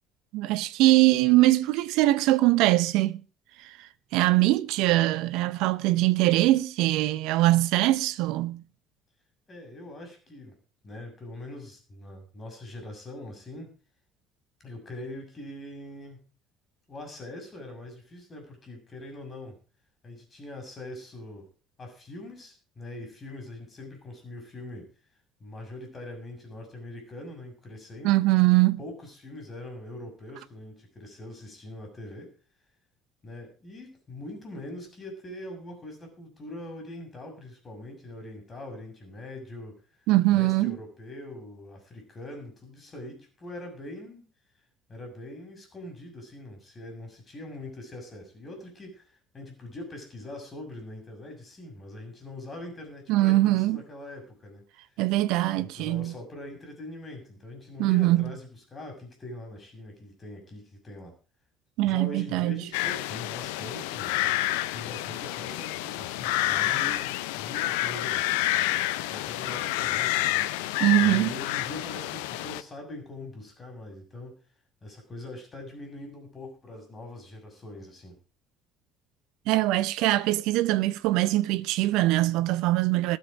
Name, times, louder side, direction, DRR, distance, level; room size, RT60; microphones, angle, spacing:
voice 1, 0.3-3.2 3.6-3.7 4.1-8.6 28.0-28.8 40.1-40.8 53.1-53.8 55.0-56.1 57.8-58.3 61.8-62.6 70.8-71.3 79.5-83.2, right 17 dB, 65° right, 0.8 m, -22 dB
voice 2, 9.5-10.6 10.8-13.7 14.6-16.2 16.9-19.6 20.0-21.5 21.8-24.9 25.4-28.2 28.8-32.3 33.2-39.8 40.3-44.3 44.9-54.6 55.6-61.2 61.8-64.2 64.7-74.4 74.8-78.2, left 1 dB, 30° left, 6.6 m, -42 dB
sound 1, 62.7-72.6, left 16 dB, 70° left, 0.7 m, -29 dB
20.5 x 7.4 x 5.0 m
figure-of-eight pair, 55°, 0 cm